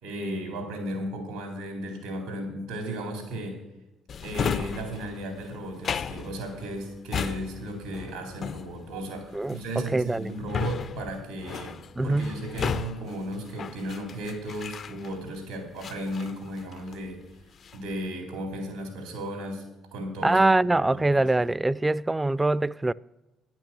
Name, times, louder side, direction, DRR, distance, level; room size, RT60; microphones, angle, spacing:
voice 1, 0.0-3.6 4.2-17.2 17.7-19.6 19.9-20.4 20.7-21.5, right 1 dB, 85° right, 3.6 m, -35 dB
Drawer open or close, 4.1-15.4 15.8-17.1 17.4-17.9, left 7 dB, 50° left, 0.4 m, -35 dB
voice 2, 9.9-10.3 12.0-12.4 20.2-22.9, right 2 dB, 15° right, 0.3 m, -23 dB
10.0 x 8.9 x 7.7 m
hypercardioid pair, 55°, 0 cm